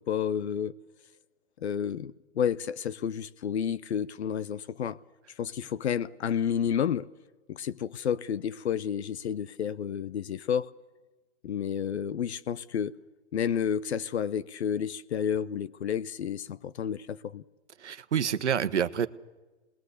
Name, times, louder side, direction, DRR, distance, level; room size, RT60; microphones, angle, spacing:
voice 1, 0.1-0.8 1.6-5.0 5.4-7.1 7.5-10.7 11.4-12.9 13.3-17.4, left 8 dB, 70° left, 0.9 m, -30 dB
voice 2, 17.8-19.1, right 8 dB, 85° right, 1.2 m, -27 dB
27.0 x 20.5 x 8.2 m
hypercardioid pair, 135°, 34 cm